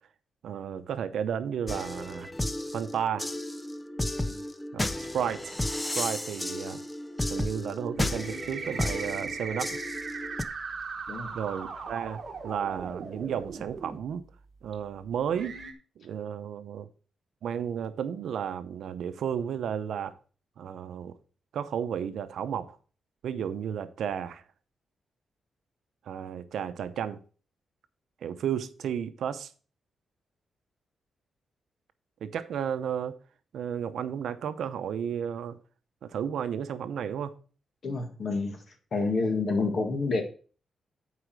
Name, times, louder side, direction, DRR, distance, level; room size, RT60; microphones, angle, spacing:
voice 1, 0.4-2.3 2.7-3.3 4.7-6.8 7.3-9.8 11.3-14.2 14.6-15.6 16.0-16.9 17.4-20.1 20.6-21.2 21.5-22.8 23.2-24.4 26.1-27.2 28.2-29.5 32.2-33.2 33.5-35.6 36.0-37.3, right 8 dB, 75° right, 0.7 m, -33 dB
sound 1, 1.7-10.4, left 1 dB, 10° left, 0.5 m, -33 dB
sound 2, 7.9-14.0 14.7-14.8 15.3-15.7, right 5 dB, 40° right, 1.1 m, -38 dB
voice 2, 37.8-38.6 38.9-40.2, left 3 dB, 45° left, 1.7 m, -28 dB
8.2 x 4.9 x 6.1 m
wide cardioid pair, 170°, 0 cm